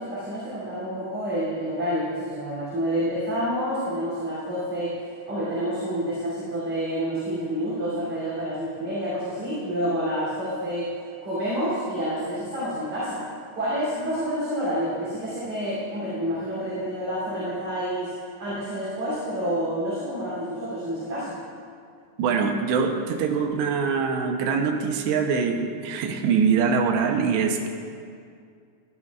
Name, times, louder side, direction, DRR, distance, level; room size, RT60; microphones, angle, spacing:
voice 1, 0.0-10.9 11.2-13.2 13.5-18.1 18.4-21.4, equal, 35° right, -10 dB, 3.9 m, -28 dB
voice 2, 22.2-27.7, right 5 dB, 80° right, 4 dB, 3.0 m, -23 dB
16.0 x 13.5 x 2.4 m, 2.2 s
omnidirectional pair, 4.9 m